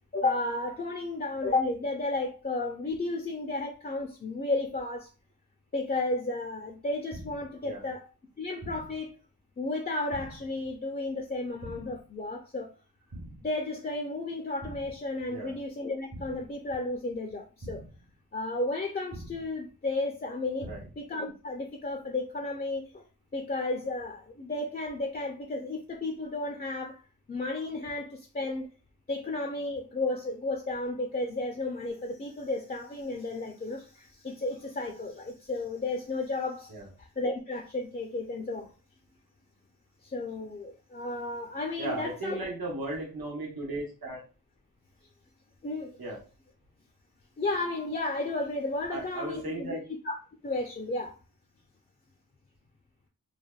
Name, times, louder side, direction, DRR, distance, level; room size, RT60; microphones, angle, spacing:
voice 1, 0.1-5.1 5.7-8.1 8.4-9.2 9.6-12.7 13.4-17.8 18.3-20.7 21.0-23.0 23.3-27.0 27.3-28.7 29.1-36.7 37.0-38.7 40.0-42.4 45.6-45.9 47.4-49.8 50.0-50.2 50.4-51.1, left 2 dB, 25° left, 0.4 m, -33 dB
sound 1, 7.1-7.6 8.6-9.1 10.1-10.6 11.6-12.1 13.1-13.6 14.6-15.1 16.1-16.6 17.6-18.1 19.1-19.6 20.6-21.1, right 1 dB, 45° right, 0.8 m, -44 dB
voice 2, 15.3-15.6 20.6-20.8 36.7-36.9 41.8-44.2 46.0-46.2 48.9-49.8, right 2 dB, 80° right, 0.9 m, -36 dB
3.2 x 2.1 x 2.3 m
wide cardioid pair, 70°, 36 cm